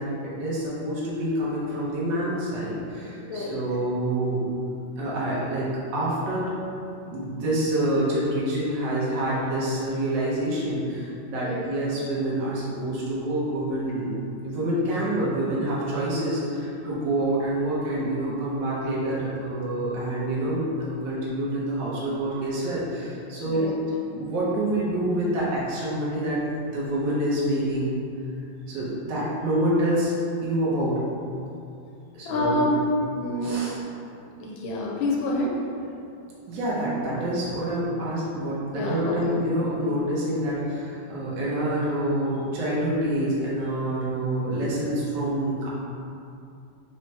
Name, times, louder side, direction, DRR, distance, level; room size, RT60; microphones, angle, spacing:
voice 1, 0.0-4.5 5.0-6.5 7.1-14.1 14.4-23.7 24.1-26.4 26.7-28.0 28.7-30.1 30.4-31.0 32.1-32.7 33.4-33.7 36.5-45.7, right 1 dB, 65° right, -7 dB, 1.5 m, -27 dB
voice 2, 3.2-3.6 11.4-11.7 23.4-23.7 32.2-32.8 33.2-33.6 34.4-35.6 38.7-39.2, left 1 dB, 80° left, -2 dB, 1.3 m, -27 dB
4.3 x 3.3 x 2.8 m, 2.5 s
omnidirectional pair, 2.3 m